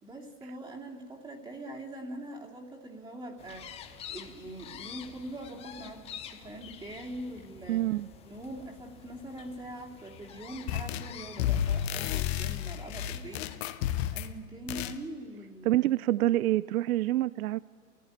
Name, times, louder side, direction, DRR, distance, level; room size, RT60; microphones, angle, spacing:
voice 1, 0.0-7.9 8.2-13.5 14.1-15.9, right 1 dB, 10° right, -2 dB, 2.8 m, -43 dB
sound 1, 3.4-13.6, left 9 dB, 15° left, 0.6 m, -48 dB
voice 2, 7.7-8.1 15.7-17.6, right 14 dB, 65° right, 19 dB, 0.6 m, -26 dB
sound 2, 10.7-11.1 11.4-14.3 14.7-15.0, left 11 dB, 40° left, 1.2 m, -31 dB
30.0 x 16.0 x 9.9 m, 2.3 s
hypercardioid pair, 135°, 47 cm